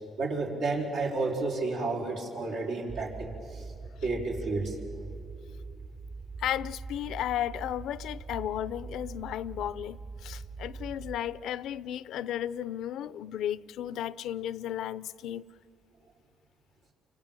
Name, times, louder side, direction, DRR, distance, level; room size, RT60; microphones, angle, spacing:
voice 1, 0.2-3.7 4.0-4.8, right 3 dB, 90° right, 4.9 m, -31 dB
sound 1, 2.9-11.2, right 4 dB, 70° right, 3.8 m, -43 dB
voice 2, 6.4-15.4, left 11 dB, 85° left, 0.5 m, -34 dB
28.0 x 25.5 x 7.7 m
cardioid pair, 90°, 0 cm